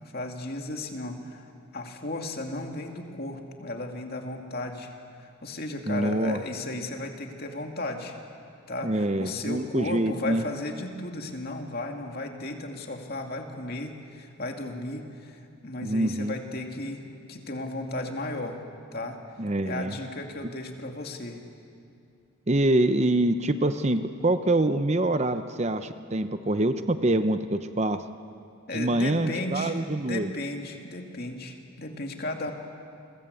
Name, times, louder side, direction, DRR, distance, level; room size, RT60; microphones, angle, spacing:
voice 1, 0.0-4.9 5.2-8.2 8.7-18.6 18.9-19.3 19.6-21.4 28.7-32.5, left 2 dB, 45° left, 3 dB, 2.6 m, -35 dB
voice 2, 5.9-6.4 8.8-10.5 15.8-16.3 19.4-19.9 22.5-28.0 28.7-30.3, right 1 dB, 30° right, 10 dB, 0.7 m, -25 dB
29.5 x 22.0 x 8.3 m, 2.5 s
head